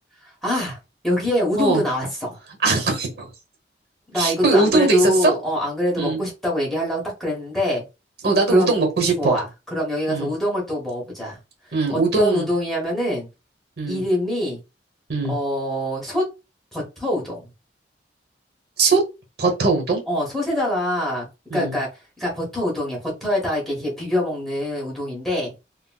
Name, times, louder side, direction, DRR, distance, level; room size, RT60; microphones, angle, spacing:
voice 1, 0.4-0.8 1.0-2.4 4.1-7.8 8.5-8.8 9.2-11.4 11.9-13.3 13.9-14.6 15.2-16.2 16.7-17.5 20.1-21.3 21.5-21.9 22.2-25.5, left 1 dB, ahead, 1.1 m, -24 dB
voice 2, 2.6-3.3 4.1-5.3 6.0-6.2 8.2-9.4 10.1-10.3 11.7-12.4 13.8-14.0 15.1-15.3 18.8-19.0 19.4-20.0 21.5-21.8, right 3 dB, 60° right, 1.0 m, -20 dB
3.8 x 2.2 x 2.3 m
head